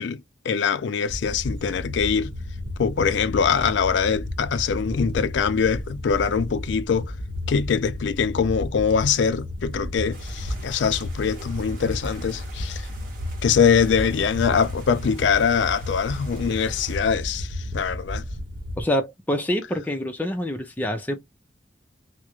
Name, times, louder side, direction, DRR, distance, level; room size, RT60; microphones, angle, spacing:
voice 1, 0.0-2.3 2.8-7.1 7.5-12.9 13.4-18.2, left 6 dB, 75° left, 0.4 m, -23 dB
sound 1, 1.1-18.8, left 1 dB, 85° right, 0.8 m, -33 dB
sound 2, 10.1-17.0, right 3 dB, 50° right, 0.9 m, -47 dB
voice 2, 18.8-21.2, equal, 10° left, 0.4 m, -26 dB
2.3 x 2.0 x 2.8 m
head